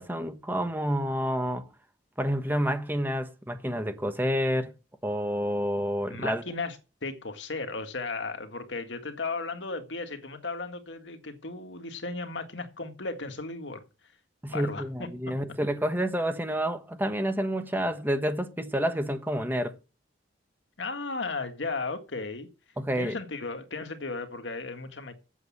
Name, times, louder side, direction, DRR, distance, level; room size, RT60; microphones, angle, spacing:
voice 1, 0.0-1.7 2.2-4.7 5.0-6.4 14.4-19.7 22.8-23.2, equal, 10° right, 1.1 m, -29 dB
voice 2, 6.1-6.8 7.0-13.8 14.5-15.3 20.8-22.5 23.0-25.2, left 3 dB, 85° left, 1.8 m, -35 dB
8.2 x 7.4 x 8.4 m
head